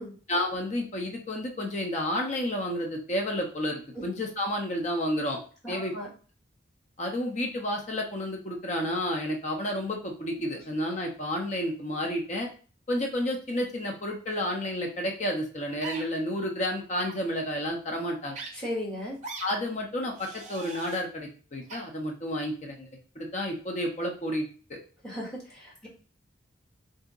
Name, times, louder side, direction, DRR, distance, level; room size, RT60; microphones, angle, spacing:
voice 1, 0.3-5.4 5.7-5.9 7.0-12.5 12.9-18.4 19.4-22.9 23.2-24.8, left 1 dB, 35° left, 1 dB, 0.7 m, -31 dB
voice 2, 5.6-6.1 18.5-19.2 25.0-25.9, left 1 dB, 5° left, -6 dB, 1.4 m, -36 dB
sound 1, 15.8-16.0 17.0-17.2 18.3-18.5 19.2-19.5 20.1-21.0 21.7-21.8, right 3 dB, 35° right, 0.6 m, -40 dB
2.8 x 2.7 x 3.7 m, 0.39 s
head